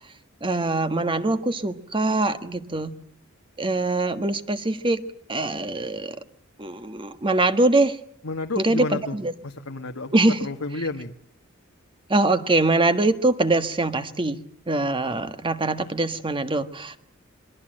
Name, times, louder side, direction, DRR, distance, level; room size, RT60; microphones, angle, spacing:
voice 1, 0.4-3.0 3.6-5.0 5.3-6.2 6.6-8.0 8.6-9.3 10.1-10.4 12.1-17.0, right 2 dB, 25° right, 9 dB, 1.5 m, -23 dB
voice 2, 8.2-9.2 9.4-11.1, left 3 dB, 80° left, 3 dB, 1.7 m, -31 dB
27.0 x 23.0 x 7.8 m, 0.66 s
head